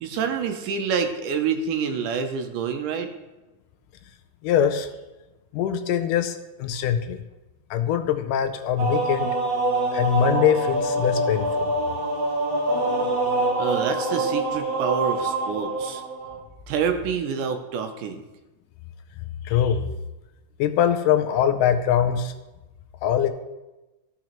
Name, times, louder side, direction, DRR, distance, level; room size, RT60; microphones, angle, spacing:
voice 1, 0.0-3.1 13.6-16.0 16.7-18.2, right 6 dB, 75° right, 6 dB, 2.1 m, -27 dB
voice 2, 4.4-4.9 5.5-7.2 7.7-9.3 9.9-11.7 13.6-13.9 19.4-19.8 20.6-22.3 23.0-23.3, left 9 dB, 80° left, 6 dB, 2.0 m, -22 dB
sound 1, 8.8-16.4, right 2 dB, 60° right, 2.4 m, -25 dB
14.0 x 5.9 x 3.0 m, 1.1 s
omnidirectional pair, 3.9 m